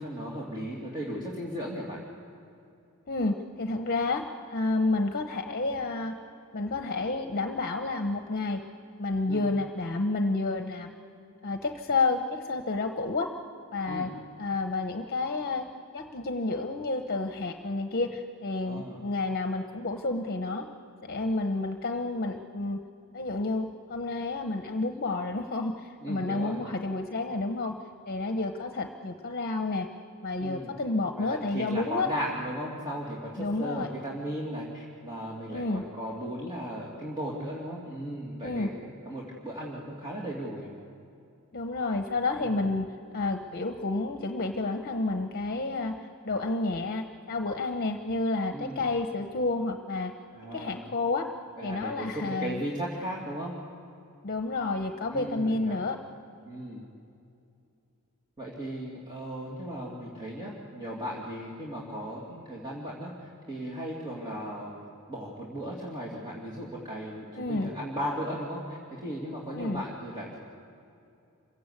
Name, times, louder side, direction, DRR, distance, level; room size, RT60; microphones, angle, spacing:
voice 1, 0.0-2.0 9.3-9.5 13.8-14.1 18.6-19.0 26.0-26.6 30.4-30.8 31.2-40.7 42.4-42.5 48.5-48.9 50.3-50.9 51.6-53.5 55.1-55.8 56.4-56.9 58.4-64.7 65.1-70.4, equal, 20° right, -5 dB, 2.7 m, -36 dB
voice 2, 3.1-4.2 4.5-6.1 6.5-8.6 9.0-10.9 11.4-13.3 13.7-14.1 14.4-15.7 15.9-20.7 21.0-22.8 23.1-27.7 28.1-29.9 30.2-32.1 33.4-33.9 35.5-35.8 38.4-38.7 41.5-42.9 43.1-45.9 46.2-50.1 50.5-51.3 51.6-52.6 54.2-56.0 67.4-67.7 69.5-69.8, left 3 dB, 45° left, 5 dB, 1.0 m, -30 dB
26.5 x 16.5 x 8.3 m, 2.6 s
head